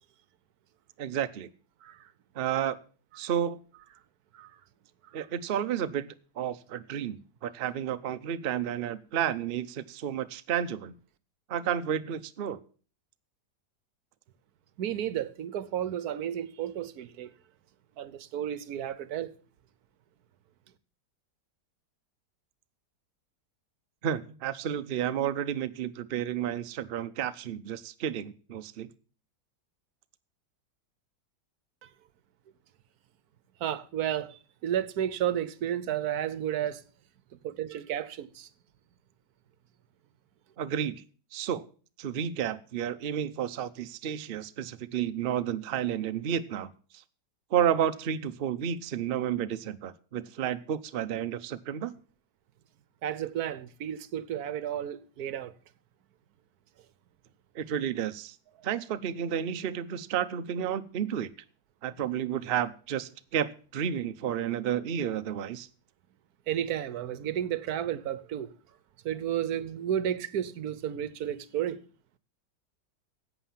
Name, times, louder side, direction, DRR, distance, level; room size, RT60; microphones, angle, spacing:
voice 1, 1.0-1.5 2.4-2.8 3.2-3.6 5.1-10.9 11.5-12.6 24.0-28.9 40.6-40.9 41.3-41.6 42.0-46.7 47.5-51.9 57.5-58.3 58.6-61.3 61.8-65.7, right 9 dB, 80° right, 0.5 m, -31 dB
voice 2, 14.8-17.3 18.0-19.3 31.8-31.9 33.6-36.8 37.4-38.5 53.0-55.5 66.5-68.5 69.0-71.8, right 10 dB, 65° right, 1.2 m, -32 dB
11.5 x 8.1 x 7.3 m
omnidirectional pair, 1.9 m